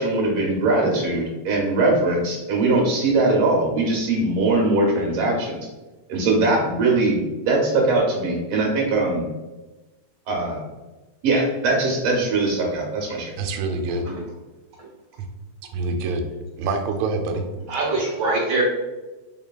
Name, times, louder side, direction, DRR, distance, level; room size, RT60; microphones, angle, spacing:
voice 1, 0.0-5.6 6.1-7.2 7.4-9.2 10.3-10.6 11.2-13.3, right 2 dB, 70° right, -1 dB, 1.7 m, -21 dB
voice 2, 13.4-14.1 15.2-15.3 15.7-16.3 16.6-17.5, right 3 dB, 85° right, 4 dB, 1.9 m, -25 dB
voice 3, 17.7-18.6, right 2 dB, 45° right, -5 dB, 1.7 m, -23 dB
4.7 x 3.2 x 2.2 m, 1.1 s
omnidirectional pair, 3.3 m